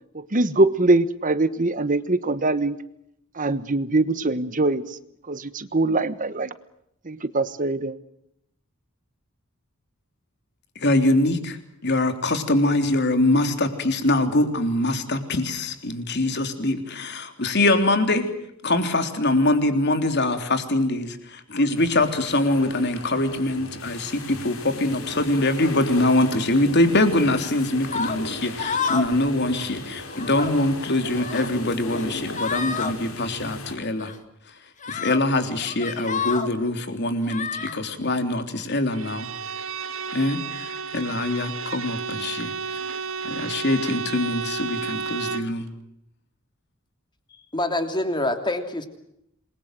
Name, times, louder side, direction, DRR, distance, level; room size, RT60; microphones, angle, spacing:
voice 1, 0.1-2.8 3.3-5.0 5.3-6.5 7.0-8.0, right 2 dB, 40° right, 13 dB, 1.2 m, -22 dB
voice 2, 10.8-11.4 11.8-18.2 18.6-21.1 21.5-24.1 24.4-24.5 24.8-29.8 30.2-34.1 35.0-37.5 37.8-39.2 40.1-40.4 40.9-42.5 43.4-45.6, left 2 dB, 55° left, 7 dB, 3.4 m, -23 dB
sound 1, 21.7-33.8, left 2 dB, 75° left, 5.9 m, -37 dB
sound 2, 27.9-28.2 28.6-29.2 29.5-29.7 30.1-30.5 31.0-31.5 31.9-32.0 32.3-32.9 34.0-34.2 34.8-35.2 35.6-36.5 37.3-37.7, left 5 dB, 35° left, 2.3 m, -29 dB
Bowed string instrument, 38.9-45.6, right 5 dB, 65° right, 1.7 m, -32 dB
voice 3, 47.5-48.9, left 1 dB, 20° left, 7 dB, 3.1 m, -25 dB
28.0 x 22.0 x 7.7 m, 0.78 s
head